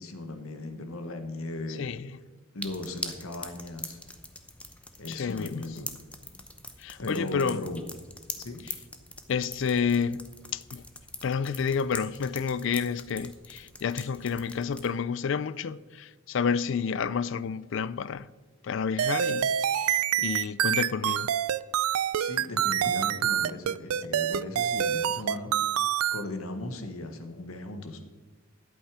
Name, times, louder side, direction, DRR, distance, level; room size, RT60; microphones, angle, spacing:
voice 1, 0.0-1.8 2.5-4.0 5.0-5.9 7.0-7.8 8.4-8.6 22.2-25.5 26.1-28.0, left 2 dB, 80° left, 1.3 m, -37 dB
voice 2, 1.8-2.1 5.1-5.6 6.8-7.6 9.3-10.8 11.2-18.3 18.6-21.3, left 6 dB, 60° left, 0.4 m, -30 dB
sound 1, 2.6-14.9, left 2 dB, 5° left, 0.7 m, -43 dB
sound 2, 19.0-26.2, right 10 dB, 90° right, 0.4 m, -26 dB
12.0 x 8.2 x 4.9 m
head